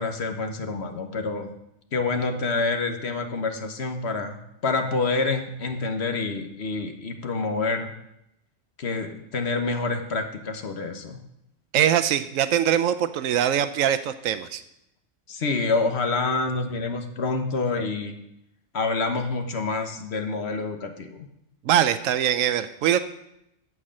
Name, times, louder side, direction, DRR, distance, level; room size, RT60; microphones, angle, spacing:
voice 1, 0.0-1.5 1.9-7.9 8.8-11.2 15.3-18.1 18.7-21.3, left 3 dB, 55° left, 6 dB, 1.2 m, -27 dB
voice 2, 11.7-14.6 21.6-23.0, right 10 dB, 90° right, 11 dB, 1.0 m, -22 dB
12.0 x 4.8 x 7.5 m, 0.82 s
omnidirectional pair, 1.3 m